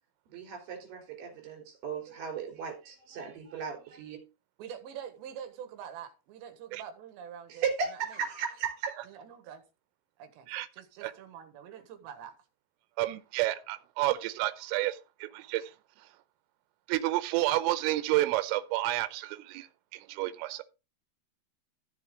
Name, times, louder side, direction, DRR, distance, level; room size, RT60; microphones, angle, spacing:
voice 1, 0.3-4.2 7.5-9.0, right 6 dB, 45° right, 5.0 m, -36 dB
voice 2, 4.6-8.2 9.1-9.6 10.2-10.5 10.7-12.4, right 8 dB, 65° right, 3.4 m, -45 dB
voice 3, 13.0-16.1 16.9-20.6, right 16 dB, 85° right, 3.3 m, -30 dB
14.5 x 6.9 x 3.7 m
omnidirectional pair, 5.9 m